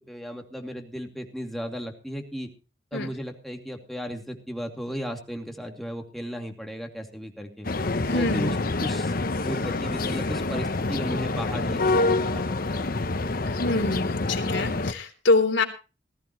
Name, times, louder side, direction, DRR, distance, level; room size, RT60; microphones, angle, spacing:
voice 1, 0.1-2.5 2.9-7.7 8.1-12.9, equal, ahead, 3 dB, 2.5 m, -35 dB
sound 1, 7.6-14.9, left 2 dB, 50° left, 0.9 m, -27 dB
voice 2, 8.0-8.5 13.4-15.6, left 3 dB, 80° left, 5 dB, 3.4 m, -25 dB
19.5 x 14.5 x 3.0 m, 0.32 s
head